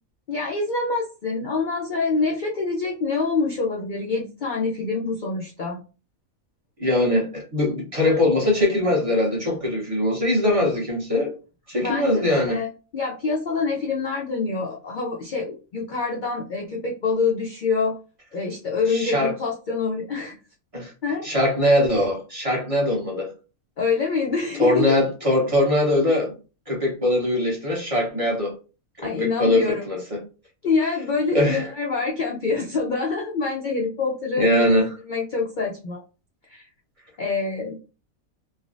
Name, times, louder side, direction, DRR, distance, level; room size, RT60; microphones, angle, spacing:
voice 1, 0.3-5.8 11.8-12.7 12.9-18.0 18.3-20.4 21.0-21.3 23.8-24.9 29.0-29.8 30.6-34.8 35.1-36.0 36.5-36.7 37.2-37.8, left 4 dB, 65° left, 0.4 m, -26 dB
voice 2, 6.8-11.3 11.7-12.6 18.9-19.3 20.7-20.9 21.2-23.3 24.6-26.3 26.7-28.5 29.0-30.2 31.3-31.7 34.4-34.9, left 1 dB, 30° right, 0.9 m, -21 dB
3.2 x 2.3 x 2.5 m
omnidirectional pair, 1.5 m